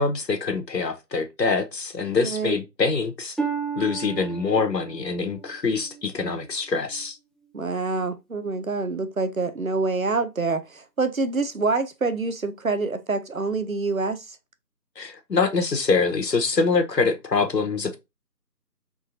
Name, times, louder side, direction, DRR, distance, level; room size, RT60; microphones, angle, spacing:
voice 1, 0.0-3.4 3.8-7.2 15.0-18.0, left 4 dB, 80° left, 1.0 m, -24 dB
voice 2, 2.2-2.6 7.5-14.4, right 3 dB, 60° right, 0.5 m, -26 dB
Harp, 3.4-7.1 7.7-8.1 8.7-8.8, right 6 dB, ahead, 0.4 m, -34 dB
3.7 x 2.8 x 2.5 m
figure-of-eight pair, 175°, 50 cm